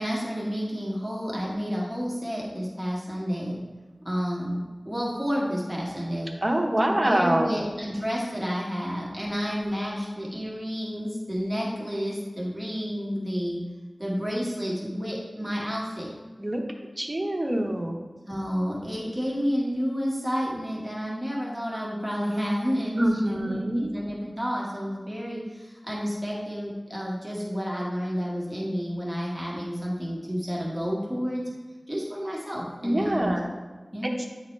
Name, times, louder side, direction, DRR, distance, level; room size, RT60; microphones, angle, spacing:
voice 1, 0.0-3.6 4.0-6.3 6.8-13.6 14.0-16.1 18.3-31.4 31.9-33.4 33.9-34.2, equal, 5° right, -5 dB, 1.5 m, -30 dB
voice 2, 6.4-7.5 16.4-16.6 17.0-18.0 23.0-23.9 32.8-33.5 34.0-34.1, right 1 dB, 30° right, 1 dB, 0.9 m, -25 dB
9.2 x 3.9 x 3.2 m, 1.3 s
wide cardioid pair, 60°, 0 cm